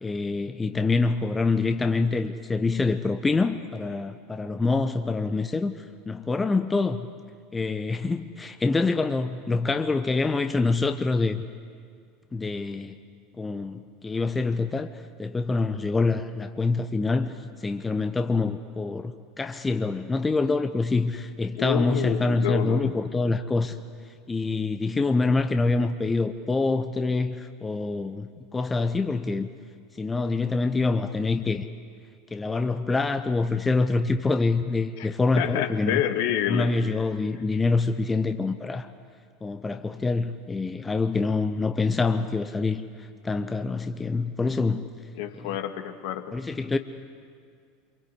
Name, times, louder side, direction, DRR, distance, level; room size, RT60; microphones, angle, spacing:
voice 1, 0.0-5.7 6.1-7.1 7.5-11.4 12.3-13.0 13.4-14.9 15.2-17.3 17.6-23.7 24.3-29.5 30.0-31.7 32.3-36.0 36.5-38.9 39.4-42.8 43.2-44.8 46.3-46.8, left 3 dB, 15° left, 8 dB, 1.0 m, -25 dB
voice 2, 21.6-23.0 35.0-35.1 35.4-36.7 37.3-37.5 45.2-46.4, left 11 dB, 60° left, 7 dB, 1.8 m, -28 dB
27.5 x 23.5 x 8.3 m, 2.1 s
figure-of-eight pair, 75°, 0 cm